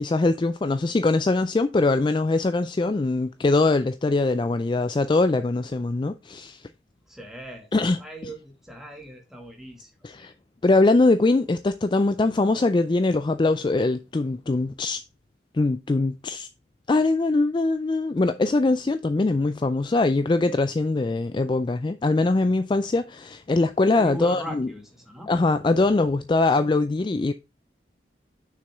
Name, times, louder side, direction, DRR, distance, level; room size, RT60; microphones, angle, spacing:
voice 1, 0.0-6.7 7.7-8.0 10.0-10.3 10.6-15.0 15.5-16.5 16.9-24.7 25.3-27.3, left 2 dB, 25° left, 0.3 m, -22 dB
voice 2, 7.1-10.4 24.0-25.3, equal, ahead, 1.9 m, -40 dB
6.7 x 6.1 x 3.5 m
head